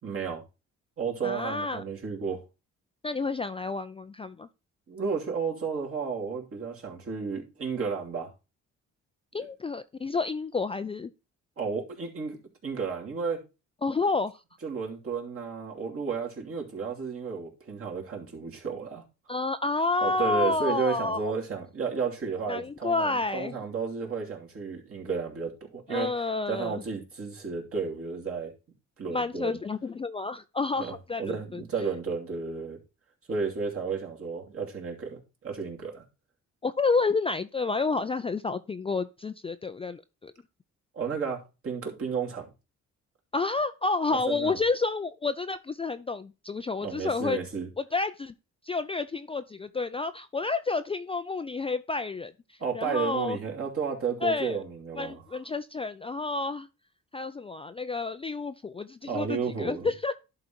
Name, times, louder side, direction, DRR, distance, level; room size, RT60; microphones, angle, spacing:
voice 1, 0.0-0.4 1.0-2.4 4.9-8.3 9.4-9.5 11.6-13.4 14.6-19.0 20.0-26.1 26.5-28.5 29.0-29.6 30.8-32.8 33.3-36.0 40.9-42.5 44.1-44.6 46.8-47.7 52.6-55.4 59.1-59.9, right 5 dB, 50° right, 2.8 m, -32 dB
voice 2, 1.2-1.8 3.0-4.5 9.3-11.1 13.8-14.4 19.3-21.3 22.5-23.5 25.9-26.8 29.1-31.6 36.6-40.3 43.3-47.4 47.8-48.3 48.6-53.4 54.2-54.6 55.0-56.7 57.1-60.1, left 3 dB, 20° left, 0.4 m, -30 dB
11.0 x 3.9 x 4.3 m
cardioid pair, 90°, 30 cm